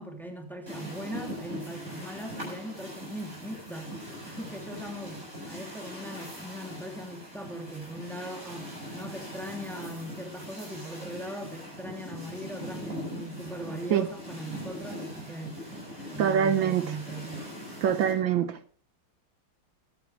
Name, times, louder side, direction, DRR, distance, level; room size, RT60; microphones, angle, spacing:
voice 1, 0.0-15.8 16.1-17.5, right 1 dB, ahead, 2.8 m, -40 dB
sound 1, 0.7-18.1, equal, 40° right, 8.3 m, -41 dB
voice 2, 16.2-17.0 17.8-18.6, right 8 dB, 75° right, 1.5 m, -24 dB
23.5 x 10.5 x 3.3 m
omnidirectional pair, 2.2 m